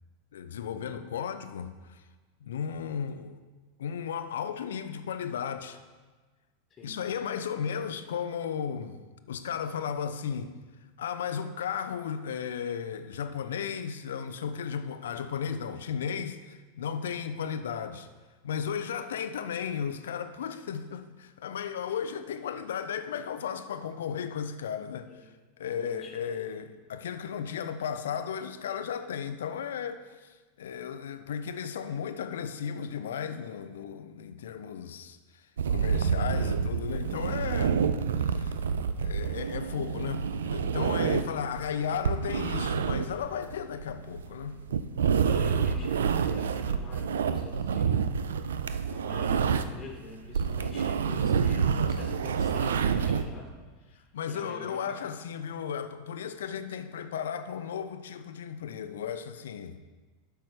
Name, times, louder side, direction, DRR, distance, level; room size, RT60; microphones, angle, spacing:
voice 1, 0.3-2.0 2.4-3.4 3.8-5.8 6.8-9.0 9.3-10.5 11.0-18.1 18.4-25.3 25.6-37.8 38.2-38.6 39.0-44.6 54.1-59.8, left 7 dB, 70° left, 0.5 m, -35 dB
voice 2, 25.6-26.1 45.3-48.6 48.8-53.5 53.8-55.0, left 3 dB, 25° left, 1.4 m, -46 dB
sound 1, 35.6-49.9 50.2-53.2, right 6 dB, 75° right, 0.4 m, -28 dB
8.0 x 5.7 x 4.9 m
hypercardioid pair, 90°, 0 cm